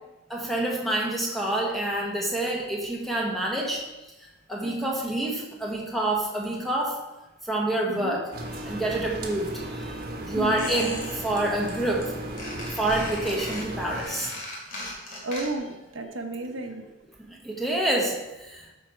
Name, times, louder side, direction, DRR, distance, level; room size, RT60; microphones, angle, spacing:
voice 1, 0.3-3.9 4.5-7.0 7.5-8.3 8.6-9.9 10.3-12.1 12.7-14.4 17.2-18.6, right 1 dB, ahead, -2 dB, 1.2 m, -27 dB
voice 2, 4.6-5.0 7.9-8.2 10.3-10.7 15.2-16.9, right 1 dB, 75° right, 3 dB, 1.1 m, -33 dB
sound 1, 8.3-14.0, right 1 dB, 45° right, 1.3 m, -36 dB
Squeak, 10.6-11.4 11.7-12.1 12.4-15.8 16.0-16.1, left 1 dB, 40° left, 2.6 m, -38 dB
13.0 x 4.5 x 4.6 m, 1.0 s
head